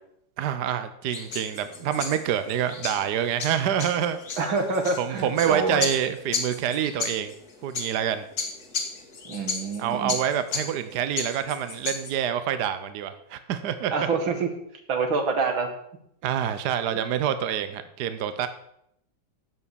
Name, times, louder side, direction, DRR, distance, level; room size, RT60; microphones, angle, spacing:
voice 1, 0.4-4.2 5.0-7.3 7.6-8.2 9.8-14.1 16.2-18.5, right 9 dB, 65° right, 11 dB, 1.2 m, -27 dB
sound 1, 1.1-12.2, left 4 dB, 50° left, 2.2 m, -35 dB
voice 2, 4.4-5.9 9.3-10.2 13.9-14.5 14.9-15.7, right 4 dB, 80° right, 5 dB, 2.6 m, -26 dB
11.0 x 8.4 x 7.0 m, 0.75 s
omnidirectional pair, 2.1 m